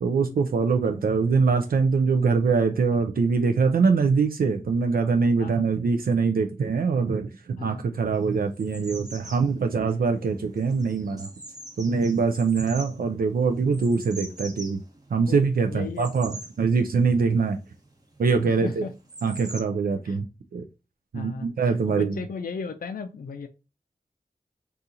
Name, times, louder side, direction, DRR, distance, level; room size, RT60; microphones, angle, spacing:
voice 1, 0.0-11.3 11.8-14.8 15.1-17.6 18.2-18.8 19.2-20.3 20.5-20.6 21.1-22.2, right 5 dB, 80° right, 0.4 m, -23 dB
sound 1, 8.2-19.6, right 1 dB, 25° right, 0.8 m, -44 dB
voice 2, 15.7-16.1 18.4-18.9 20.0-20.2 21.1-23.5, left 5 dB, 75° left, 0.4 m, -35 dB
2.7 x 2.4 x 3.7 m
wide cardioid pair, 50°, 15 cm